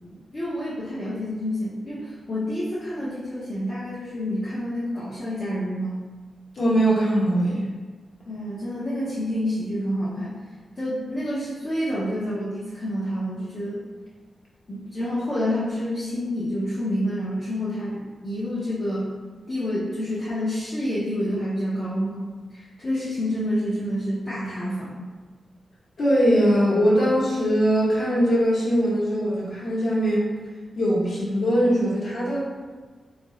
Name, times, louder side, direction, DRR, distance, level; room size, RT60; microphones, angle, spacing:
voice 1, 0.0-6.0 8.3-10.3 10.8-13.8 14.7-19.1 19.5-25.0, equal, 30° left, -8 dB, 0.6 m, -28 dB
voice 2, 6.5-7.6 26.0-30.3 30.7-32.5, equal, 50° left, -7 dB, 1.0 m, -21 dB
3.6 x 2.4 x 3.1 m, 1.4 s
wide cardioid pair, 155°, 0 cm